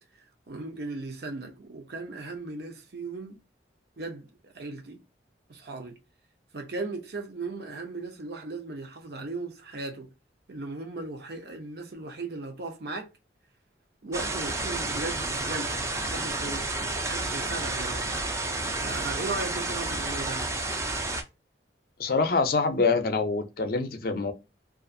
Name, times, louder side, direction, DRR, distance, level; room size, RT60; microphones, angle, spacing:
voice 1, 0.2-3.4 4.0-5.0 5.5-6.0 6.5-10.1 10.5-13.1 14.0-18.1 18.8-20.4, right 3 dB, 60° right, 0.7 m, -37 dB
sound 1, 14.1-21.2, right 2 dB, 15° right, 0.3 m, -31 dB
voice 2, 22.0-24.3, left 4 dB, 55° left, 0.5 m, -25 dB
2.4 x 2.4 x 2.5 m
head